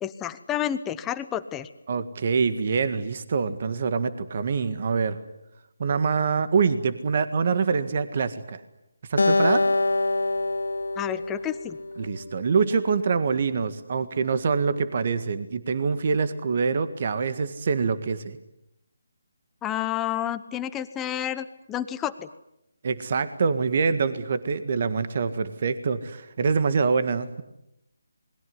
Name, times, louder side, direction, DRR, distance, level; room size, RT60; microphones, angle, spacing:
voice 1, 0.0-1.7 11.0-11.8 19.6-22.3, left 11 dB, 10° left, 11 dB, 1.0 m, -30 dB
voice 2, 1.9-5.2 5.8-8.6 9.1-9.6 12.0-18.4 22.8-27.4, right 5 dB, 45° right, 12 dB, 1.7 m, -25 dB
Acoustic guitar, 9.2-12.5, left 2 dB, 85° left, 1.5 m, -25 dB
28.0 x 21.5 x 9.6 m, 0.85 s
figure-of-eight pair, 165°, 0 cm